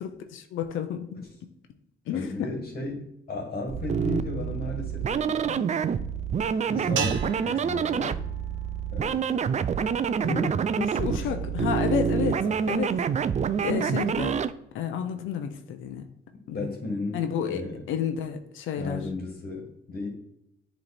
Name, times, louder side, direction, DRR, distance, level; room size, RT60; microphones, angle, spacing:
voice 1, 0.0-1.2 2.1-2.5 10.8-13.0 13.6-14.3 14.7-16.1 16.5-16.7 17.1-19.0, left 8 dB, 80° left, 6 dB, 0.7 m, -31 dB
voice 2, 2.1-5.7 6.7-8.2 8.9-9.2 10.2-10.7 11.1-11.5 12.4-12.8 13.6-13.9 16.5-17.8 18.8-20.1, left 2 dB, 40° left, 1 dB, 1.7 m, -35 dB
sound 1, 3.7-14.5, right 7 dB, 35° right, 0.4 m, -27 dB
sound 2, 7.0-9.4, right 8 dB, 75° right, 0.8 m, -37 dB
7.6 x 3.2 x 4.2 m, 0.83 s
cardioid pair, 90°, 20 cm